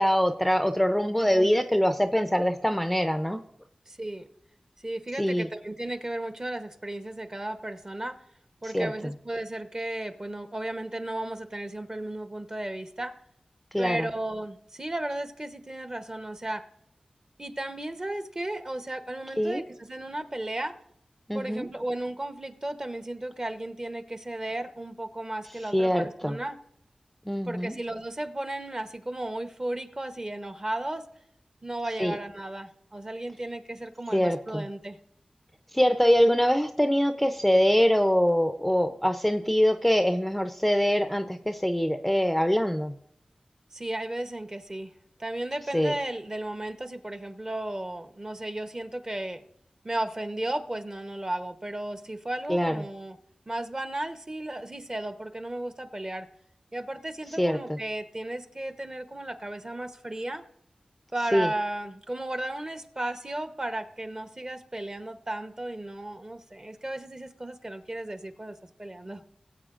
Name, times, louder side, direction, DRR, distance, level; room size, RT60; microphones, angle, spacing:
voice 1, 0.0-3.4 5.2-5.5 8.6-8.9 13.7-14.1 19.4-19.6 21.3-21.7 25.7-26.4 27.3-27.7 32.0-32.1 34.1-34.6 35.7-42.9 45.7-45.9 52.5-52.7 57.4-57.8 61.3-61.5, equal, 5° left, 8 dB, 0.5 m, -24 dB
voice 2, 1.0-1.5 2.1-2.3 3.9-4.3 4.8-8.2 8.6-13.2 13.8-16.7 17.4-20.8 21.3-26.6 27.4-31.1 31.6-35.0 43.7-44.9 45.2-49.4 49.8-53.2 53.5-56.3 56.7-60.4 61.1-69.2, right 1 dB, 30° right, 9 dB, 0.9 m, -34 dB
19.0 x 8.3 x 2.5 m, 0.69 s
wide cardioid pair, 85°, 2 cm